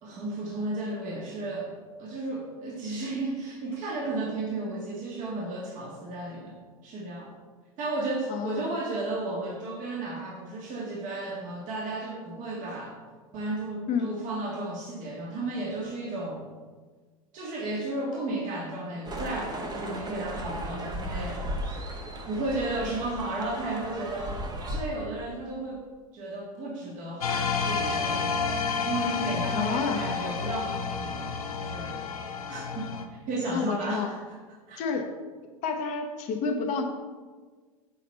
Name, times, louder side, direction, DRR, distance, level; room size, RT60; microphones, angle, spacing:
voice 1, 0.0-1.7 2.0-6.5 6.8-7.3 7.8-13.0 13.3-16.5 17.3-21.9 22.3-24.4 24.7-25.8 26.1-28.4 28.8-32.0 32.5-34.2 34.7-34.8, right 2 dB, 45° right, -3 dB, 1.5 m, -33 dB
voice 2, 8.3-8.7 13.9-14.1 29.6-30.0 33.5-34.1 34.8-35.0 35.6-36.8, left 5 dB, 45° left, 3 dB, 0.8 m, -29 dB
sound 1, 19.1-24.8, right 1 dB, 20° right, 0.9 m, -36 dB
sound 2, 27.2-33.0, left 5 dB, 90° left, 0.6 m, -30 dB
6.8 x 4.1 x 4.3 m, 1.4 s
hypercardioid pair, 90°, 18 cm